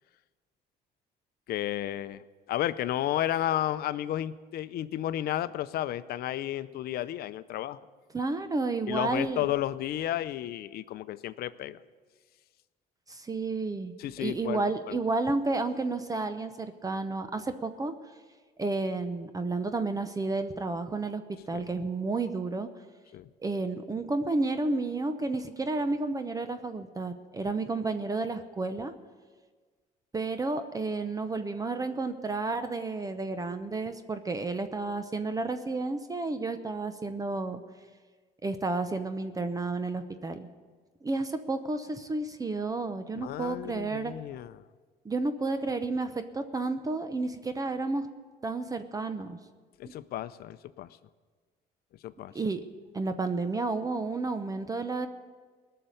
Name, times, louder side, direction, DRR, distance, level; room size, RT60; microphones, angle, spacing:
voice 1, 1.5-7.8 8.9-11.8 14.0-15.0 21.5-21.7 23.1-23.3 43.2-44.6 49.8-51.0 52.0-52.3, left 12 dB, 65° left, 15 dB, 0.6 m, -32 dB
voice 2, 8.1-9.5 13.1-17.9 18.6-21.2 21.5-22.7 23.4-28.9 30.1-37.6 38.4-40.5 41.0-44.1 45.0-48.1 48.4-49.4 49.8-49.9 52.3-52.6 52.9-55.1, right 3 dB, 20° right, 9 dB, 0.8 m, -31 dB
18.5 x 6.8 x 9.0 m, 1.5 s
cardioid pair, 110°, 17 cm